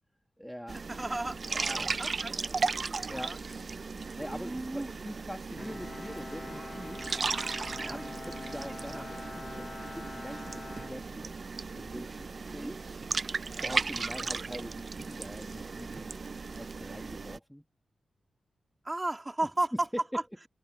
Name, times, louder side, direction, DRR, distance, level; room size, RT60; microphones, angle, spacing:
voice 1, 0.4-0.8 1.5-2.0 3.1-3.3 4.1-7.0 7.8-11.4 11.7-12.8 13.5-17.6 19.7-20.2, equal, ahead, 1.7 m, -43 dB
sound 1, 0.7-17.4, right 4 dB, 40° right, 0.3 m, -36 dB
voice 2, 0.9-1.4 2.0-2.3 3.0-3.4 4.2-4.9 7.7-8.1 8.9-9.1 12.5-12.8 18.8-19.7, right 2 dB, 15° right, 2.8 m, -35 dB
Bowed string instrument, 5.6-11.7, left 3 dB, 30° left, 1.4 m, -45 dB
wide cardioid pair, 165°, 0 cm